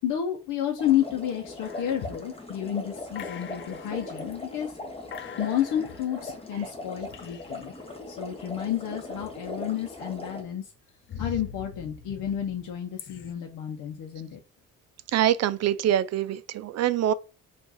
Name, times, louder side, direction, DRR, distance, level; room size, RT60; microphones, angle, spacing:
voice 1, 0.0-4.8 5.4-7.7 8.1-10.7 11.2-14.4, left 10 dB, 80° left, 0.8 m, -30 dB
sound 1, 0.8-10.4, left 2 dB, 20° left, 1.1 m, -40 dB
sound 2, 1.6-2.6 3.2-4.4 4.7-4.9 5.1-7.8 9.1-9.8 10.2-13.3, left 7 dB, 40° left, 0.6 m, -44 dB
voice 2, 15.1-17.1, right 11 dB, 60° right, 0.5 m, -24 dB
4.6 x 2.6 x 4.1 m
cardioid pair, 90°, 30 cm